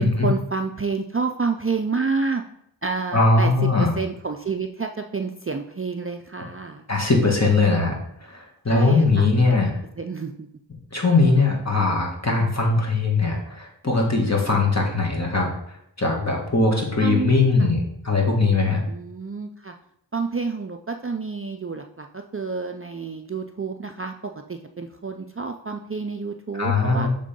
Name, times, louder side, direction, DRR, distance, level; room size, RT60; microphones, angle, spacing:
voice 1, 0.0-2.4 2.8-3.5 3.8-6.8 8.7-9.6 10.0-10.5 17.0-17.3 17.6-17.7 18.9-19.7 20.1-27.1, right 4 dB, 30° right, 4 dB, 0.4 m, -29 dB
voice 2, 3.1-3.9 6.9-8.0 8.2-9.7 10.9-15.5 16.0-18.8 26.6-27.1, left 3 dB, 35° left, 0 dB, 1.8 m, -20 dB
6.7 x 3.7 x 5.2 m, 0.74 s
wide cardioid pair, 45°, 44 cm